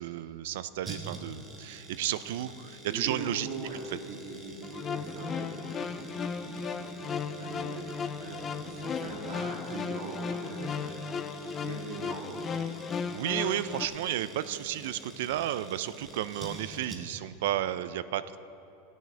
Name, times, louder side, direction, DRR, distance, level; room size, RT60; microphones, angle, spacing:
voice 1, 0.0-3.5 13.1-18.4, right 12 dB, 60° right, 14 dB, 0.4 m, -32 dB
sound 1, 0.8-17.4 17.6-17.7, right 2 dB, 15° right, 0.8 m, -47 dB
voice 2, 2.9-3.8 4.0-11.0 11.5-12.4, right 3 dB, 40° right, -4 dB, 2.5 m, -41 dB
sound 2, 4.6-13.9, left 5 dB, 15° left, 0.3 m, -35 dB
17.0 x 9.1 x 3.3 m, 2.9 s
supercardioid pair, 175°, 0 cm